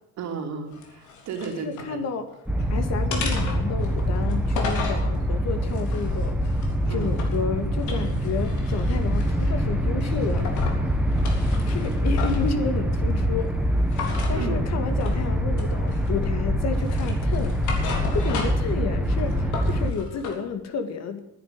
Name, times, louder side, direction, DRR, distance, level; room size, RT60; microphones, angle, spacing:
voice 1, 0.2-2.0 6.8-7.1 14.3-14.7, right 5 dB, 65° right, 3 dB, 3.2 m, -33 dB
sound 1, 0.7-1.9 2.3-2.7 3.1-5.0 5.6-7.4 7.8-9.6 10.0-10.8 11.1-12.5 13.9-14.4 15.0-15.2 15.6-16.3 16.7-18.7 19.1-20.4, left 5 dB, 75° left, 3.5 m, -35 dB
voice 2, 1.5-2.3 2.7-6.3 6.9-10.5 11.6-13.5 14.3-17.5 18.1-21.2, left 5 dB, 60° left, 8 dB, 2.1 m, -31 dB
sound 2, 2.5-19.9, equal, 5° right, 1.6 m, -24 dB
10.5 x 10.0 x 9.8 m, 0.81 s
cardioid pair, 105°, 30 cm